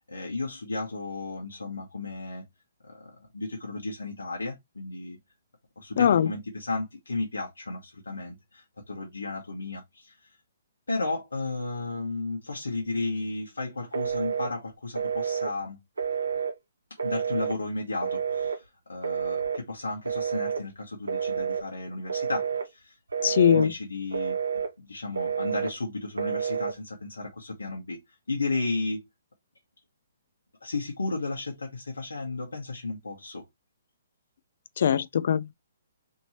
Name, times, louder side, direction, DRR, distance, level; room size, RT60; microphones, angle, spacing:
voice 1, 0.0-2.4 2.8-5.2 5.8-10.2 10.9-15.8 17.0-28.0 28.3-29.0 30.6-33.5, left 3 dB, 85° left, 1.1 m, -34 dB
voice 2, 6.0-6.3 23.2-23.7 34.8-35.5, left 8 dB, 60° left, 0.3 m, -21 dB
Telephone, 13.9-14.5 15.0-15.5 16.0-16.5 17.0-17.6 18.0-18.6 19.0-19.6 20.1-20.6 21.1-21.6 22.1-22.7 23.1-23.7 24.1-24.7 25.2-25.7 26.2-26.7, right 7 dB, 85° right, 0.7 m, -29 dB
2.9 x 2.9 x 2.8 m
hypercardioid pair, 135°, 0 cm